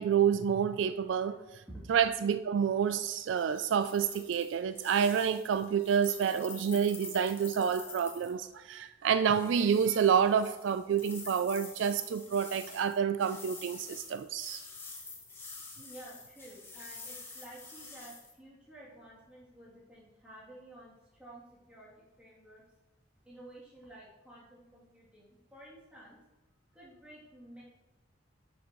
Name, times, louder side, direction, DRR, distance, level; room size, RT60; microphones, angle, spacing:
voice 1, 0.0-1.4 1.9-14.6, right 7 dB, 70° right, 0.3 m, -28 dB
sound 1, 3.4-8.3 9.3-18.3, left 3 dB, 10° left, 1.1 m, -48 dB
voice 2, 15.8-22.6 23.2-26.2 26.7-27.6, right 1 dB, 5° right, 2.8 m, -52 dB
10.5 x 6.8 x 3.1 m
head